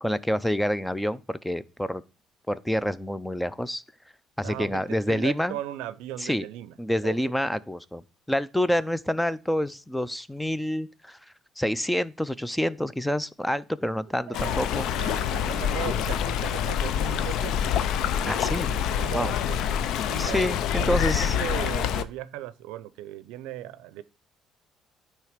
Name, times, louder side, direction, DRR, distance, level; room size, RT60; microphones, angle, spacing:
voice 1, 0.0-2.0 2.5-3.8 4.4-5.6 6.2-6.4 6.8-8.0 8.3-11.2 11.6-14.9 18.3-18.7 19.1-19.3 20.2-21.3, equal, 5° left, 0.4 m, -27 dB
voice 2, 4.4-6.7 7.0-7.2 14.2-17.7 18.2-20.5 20.8-24.0, right 14 dB, 90° right, 0.5 m, -38 dB
Stream, 14.3-22.0, left 9 dB, 75° left, 0.5 m, -26 dB
9.2 x 3.3 x 5.0 m
cardioid pair, 95°, 0 cm